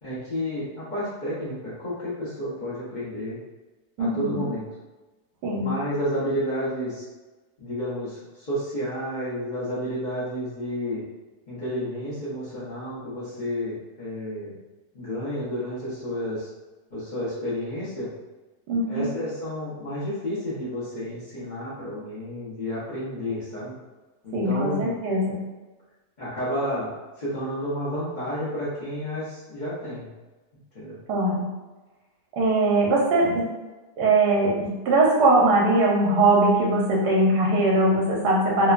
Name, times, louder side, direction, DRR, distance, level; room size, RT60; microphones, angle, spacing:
voice 1, 0.0-3.4 4.0-4.7 5.6-7.0 7.6-11.0 11.5-14.5 14.9-16.5 16.9-18.1 18.9-23.7 24.2-24.9 26.2-26.9 27.2-30.1 30.7-31.0, equal, 40° left, -10 dB, 0.8 m, -31 dB
voice 2, 4.0-4.4 5.4-5.7 18.7-19.1 24.3-25.4 31.1-31.4 32.4-33.5 34.0-38.7, right 2 dB, 85° right, -3 dB, 1.2 m, -21 dB
3.0 x 2.2 x 2.4 m, 1.2 s
omnidirectional pair, 1.7 m